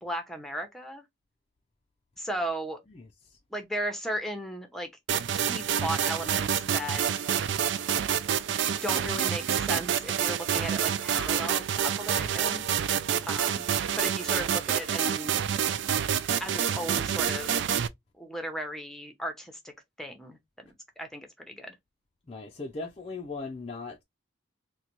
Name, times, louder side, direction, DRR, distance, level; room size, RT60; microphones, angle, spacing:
voice 1, 0.0-1.0 2.2-2.8 3.5-4.9 5.3-7.1 8.7-12.6 13.2-13.7 14.0-15.3 16.4-17.6 18.2-19.6 20.0-21.7, right 1 dB, ahead, 0.7 m, -36 dB
sound 1, 5.1-17.9, right 9 dB, 60° right, 0.3 m, -28 dB
voice 2, 22.3-24.0, left 3 dB, 30° left, 0.4 m, -38 dB
3.9 x 2.2 x 3.0 m
head